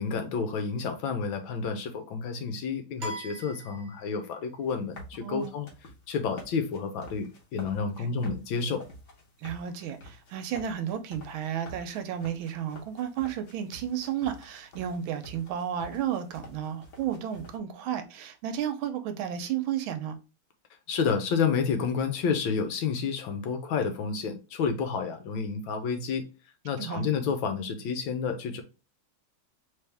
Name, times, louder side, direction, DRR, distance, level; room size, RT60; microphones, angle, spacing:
voice 1, 0.0-5.7 6.1-8.8 20.9-26.3 26.6-28.6, left 5 dB, 75° left, 1.3 m, -30 dB
sound 1, 3.0-4.4, equal, 50° right, 1.2 m, -40 dB
sound 2, 4.5-17.6, left 1 dB, 45° left, 1.1 m, -49 dB
voice 2, 5.2-5.6 8.0-8.1 9.4-20.2 26.8-27.1, right 9 dB, 75° right, 1.3 m, -33 dB
3.4 x 3.1 x 3.3 m
omnidirectional pair, 2.3 m